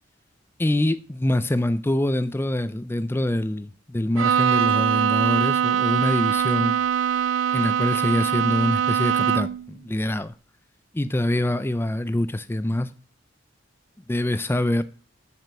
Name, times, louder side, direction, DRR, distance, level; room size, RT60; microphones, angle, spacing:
voice 1, 0.6-6.8 7.5-10.3 10.9-12.9 14.1-14.8, left 1 dB, 10° left, 0.5 m, -25 dB
Bowed string instrument, 4.2-9.7, right 8 dB, 75° right, 0.4 m, -22 dB
7.5 x 5.1 x 6.7 m
head